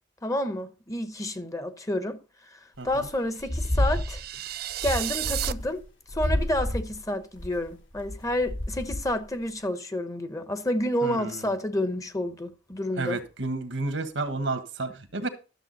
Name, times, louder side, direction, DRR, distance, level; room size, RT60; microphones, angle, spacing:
voice 1, 0.2-2.2 2.5-2.6 2.8-4.2 4.8-5.9 6.1-13.2, left 1 dB, 20° left, 0.9 m, -29 dB
sound 1, 2.9-3.1 3.4-4.4 4.7-5.8 6.1-9.3, left 1 dB, 80° left, 3.0 m, -30 dB
sound 2, 3.5-5.5, right 13 dB, 55° right, 0.4 m, -33 dB
voice 2, 11.0-11.4 12.9-15.3, right 3 dB, 80° right, 1.5 m, -31 dB
12.5 x 7.1 x 4.1 m
head